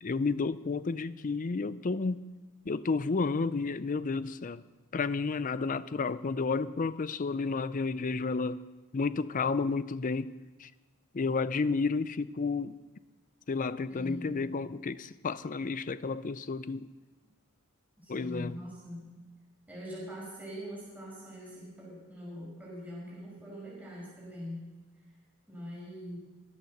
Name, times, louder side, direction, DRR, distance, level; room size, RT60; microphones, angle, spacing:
voice 1, 0.0-2.2 2.7-4.6 4.9-8.6 8.9-10.3 10.6-10.7 11.1-12.8 13.5-16.9 18.1-18.5, left 4 dB, 35° left, 0.5 m, -31 dB
voice 2, 13.9-14.3 18.0-19.1 19.7-24.6 25.5-26.2, equal, 5° right, 5.6 m, -43 dB
22.0 x 8.3 x 6.6 m
head